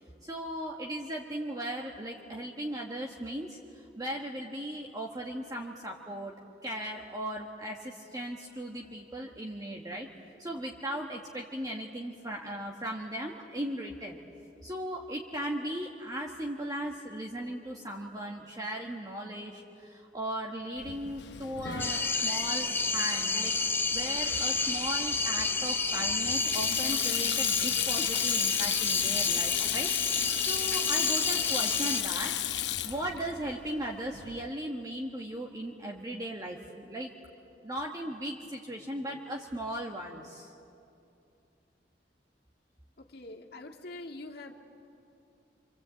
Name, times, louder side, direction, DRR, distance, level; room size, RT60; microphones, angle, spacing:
voice 1, 0.2-3.6 3.9-6.3 6.6-10.1 10.4-14.2 14.6-23.5 23.9-32.3 32.8-37.1 37.6-40.5, right 1 dB, 20° right, 0 dB, 1.4 m, -37 dB
Sink (filling or washing), 20.8-34.5, left 11 dB, 75° left, 0.9 m, -34 dB
sound 1, 21.8-32.0, left 4 dB, 10° left, 0.8 m, -30 dB
voice 2, 43.0-44.5, left 2 dB, 60° left, 1 dB, 2.1 m, -44 dB
26.5 x 26.0 x 8.4 m, 2.7 s
head